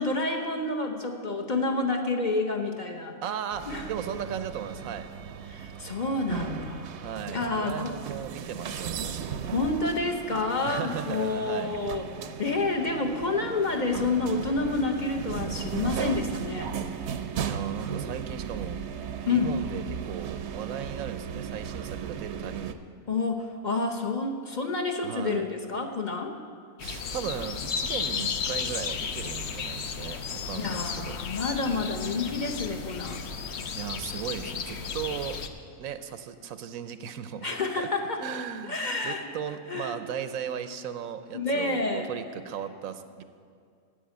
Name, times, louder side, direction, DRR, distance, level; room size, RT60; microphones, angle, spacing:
voice 1, 0.0-3.2 3.7-3.8 5.5-6.9 7.3-7.9 9.5-12.1 12.4-16.7 19.3-19.6 23.1-26.4 30.5-33.2 37.4-38.2 38.6-39.3 39.7-40.0 41.3-42.1, left 3 dB, 40° left, 2 dB, 0.9 m, -29 dB
voice 2, 3.2-5.1 7.0-9.3 10.6-11.7 17.4-18.8 19.3-22.8 25.0-25.5 26.8-31.2 33.7-35.4 35.8-37.9 38.2-43.2, right 8 dB, 90° right, 10 dB, 1.1 m, -36 dB
sound 1, 3.5-22.7, right 8 dB, 65° right, 0.8 m, -36 dB
sound 2, 26.8-35.5, left 6 dB, 60° left, 0.9 m, -34 dB
10.0 x 7.7 x 9.0 m, 2.2 s
omnidirectional pair, 1.4 m